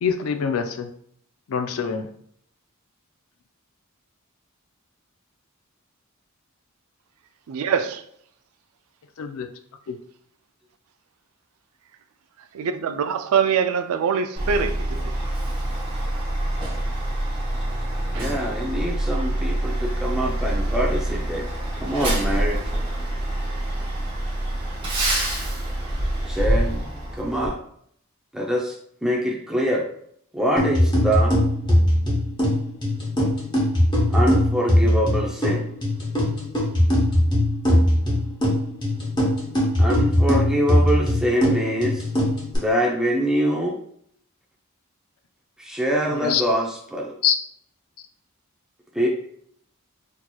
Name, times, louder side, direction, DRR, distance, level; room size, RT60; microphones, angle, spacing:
voice 1, 0.0-0.9 1.5-2.1 9.2-9.5 46.2-46.4 47.2-47.4, left 7 dB, 75° left, 0.4 m, -24 dB
voice 2, 7.5-8.0 12.5-15.1 18.1-18.3, right 6 dB, 80° right, 0.4 m, -23 dB
Truck, 14.4-27.5, right 1 dB, 25° right, 1.0 m, -26 dB
voice 3, 18.1-21.4 21.8-22.6 26.3-27.6 28.3-29.9 30.3-31.4 34.1-35.7 39.8-42.1 42.6-43.8 45.6-47.1 48.9-49.1, equal, 5° right, 0.5 m, -24 dB
sound 1, 30.6-42.6, left 1 dB, 20° left, 1.0 m, -21 dB
4.4 x 2.8 x 2.3 m
head